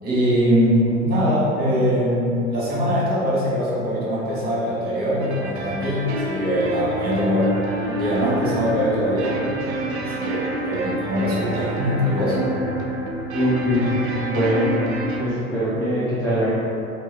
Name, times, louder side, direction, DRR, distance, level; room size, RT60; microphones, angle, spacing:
voice 1, 0.0-7.5 7.8-9.4 10.0-12.4, equal, 25° right, -8 dB, 1.3 m, -22 dB
sound 1, 5.2-15.2, right 2 dB, 55° right, 0.6 m, -27 dB
voice 2, 13.3-14.7 15.2-16.5, equal, 5° left, -12 dB, 0.6 m, -22 dB
3.0 x 2.6 x 3.7 m, 2.7 s
figure-of-eight pair, 80°, 40 cm